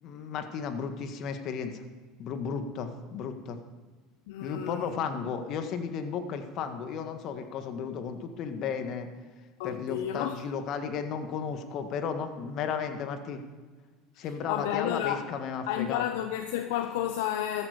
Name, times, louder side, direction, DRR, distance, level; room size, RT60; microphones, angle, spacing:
voice 1, 0.0-1.8 2.2-3.6 4.4-9.1 9.6-13.4 14.2-16.0, left 6 dB, 55° left, 1.7 m, -34 dB
voice 2, 4.3-4.9 9.6-10.4 14.2-15.3 15.7-17.7, left 11 dB, 70° left, 0.7 m, -31 dB
14.0 x 14.0 x 5.2 m
hypercardioid pair, 80°, 0 cm